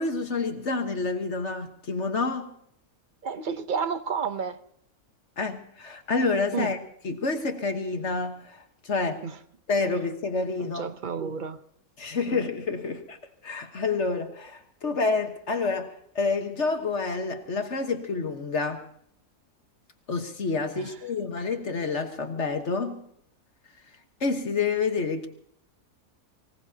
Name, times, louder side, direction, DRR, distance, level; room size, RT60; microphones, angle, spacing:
voice 1, 0.0-2.5 5.4-6.8 7.0-9.3 9.7-10.8 12.0-13.2 13.4-18.9 20.1-23.0 24.2-25.3, left 4 dB, 50° left, 1.5 m, -28 dB
voice 2, 3.2-4.6 6.5-6.7 9.2-9.4 10.6-11.6 12.3-12.5 20.8-20.9, right 6 dB, 45° right, 0.7 m, -31 dB
25.0 x 18.0 x 2.8 m
omnidirectional pair, 1.6 m